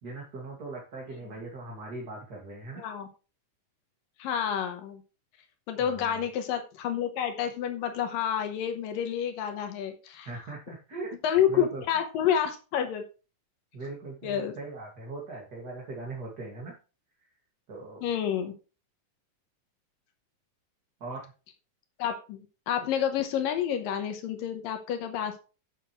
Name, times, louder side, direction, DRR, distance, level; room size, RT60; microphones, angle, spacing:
voice 1, 0.0-2.8 5.8-6.2 10.2-11.1 11.5-11.8 13.7-16.7 17.7-18.0 21.0-21.3, right 3 dB, 35° right, -2 dB, 2.3 m, -40 dB
voice 2, 2.8-3.1 4.2-5.0 5.7-10.3 11.2-13.0 14.2-14.6 18.0-18.5 22.0-25.4, left 9 dB, 85° left, 6 dB, 2.8 m, -29 dB
11.0 x 7.7 x 3.1 m, 0.33 s
omnidirectional pair, 3.9 m